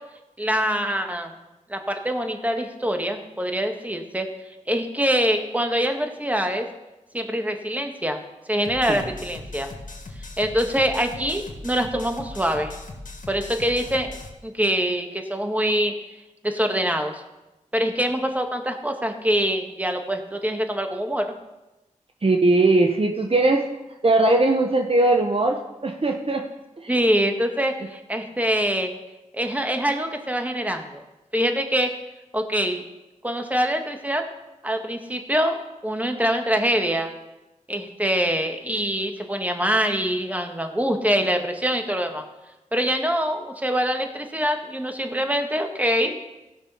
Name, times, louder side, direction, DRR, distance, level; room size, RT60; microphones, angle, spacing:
voice 1, 0.4-1.3 1.7-4.3 4.7-6.7 7.1-8.2 8.5-9.7 10.4-12.7 13.3-14.2 14.4-15.9 16.4-17.2 17.7-21.3 26.9-28.9 29.3-31.0 31.3-31.9 32.3-32.8 33.2-34.2 34.6-37.1 37.7-42.2 42.7-46.1, equal, 10° right, 5 dB, 1.6 m, -24 dB
sound 1, 8.6-14.3, left 2 dB, 80° left, 1.6 m, -39 dB
voice 2, 22.2-23.7 24.0-26.5 26.8-26.9, right 2 dB, 45° right, 3 dB, 1.0 m, -20 dB
16.0 x 6.2 x 5.6 m, 1.0 s
cardioid pair, 45°, 13 cm